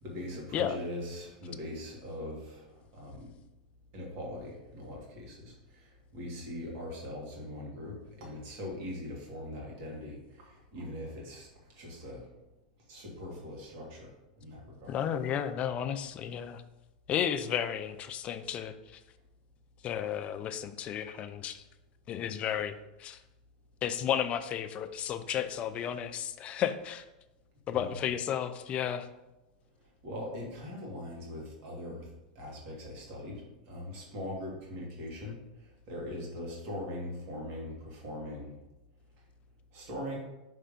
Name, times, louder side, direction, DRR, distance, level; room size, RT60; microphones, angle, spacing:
voice 1, 0.0-3.3 3.9-11.5 11.7-12.3 12.9-14.1 14.4-15.0 27.7-27.9 30.0-32.1 32.4-38.6 39.7-40.2, left 1 dB, 50° right, -2 dB, 2.0 m, -41 dB
voice 2, 14.9-16.6 17.1-19.0 19.8-21.6 22.1-23.2 23.8-27.0 27.7-29.1, left 9 dB, 30° left, 10 dB, 0.4 m, -33 dB
5.6 x 3.3 x 5.1 m, 0.97 s
supercardioid pair, 140°, 4 cm